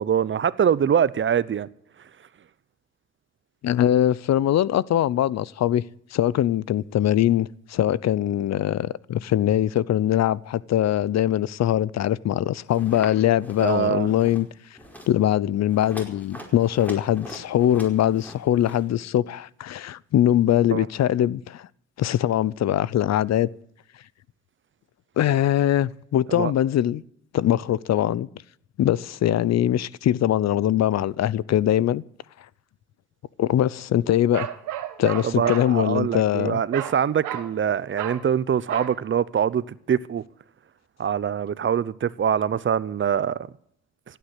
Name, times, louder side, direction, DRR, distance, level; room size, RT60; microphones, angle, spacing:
voice 1, 0.0-1.7 13.6-14.1 20.7-20.9 26.3-26.5 35.2-40.2 41.0-43.5, right 8 dB, 40° right, 0.8 m, -24 dB
voice 2, 3.6-5.8 6.1-14.5 15.1-21.7 22.0-23.5 25.2-27.0 27.3-28.3 28.8-32.0 33.4-34.5 35.0-36.6, left 11 dB, 60° left, 0.7 m, -22 dB
sound 1, 12.7-13.1 13.4-13.8 14.1-14.5 14.7-15.1 15.7-18.9, equal, 5° left, 4.8 m, -42 dB
Bark, 34.3-35.7 36.7-37.0 37.2-37.5 38.0-38.2 38.7-39.0, right 11 dB, 85° right, 1.8 m, -32 dB
16.0 x 9.4 x 8.2 m
cardioid pair, 90°, 30 cm